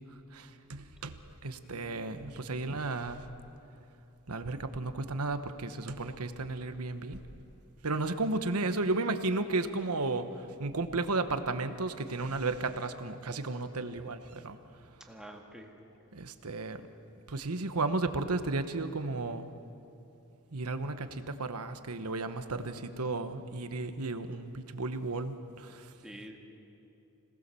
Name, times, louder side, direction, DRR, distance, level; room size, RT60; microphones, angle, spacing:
voice 1, 0.3-1.2 1.4-3.2 4.3-7.2 7.8-10.3 10.6-14.6 16.1-16.8 17.3-19.5 20.5-25.9, right 3 dB, 80° right, 9 dB, 1.2 m, -33 dB
voice 2, 1.6-2.7 15.1-15.7 26.0-26.4, right 1 dB, 5° right, 1 dB, 1.8 m, -49 dB
26.5 x 18.5 x 7.0 m, 2.8 s
head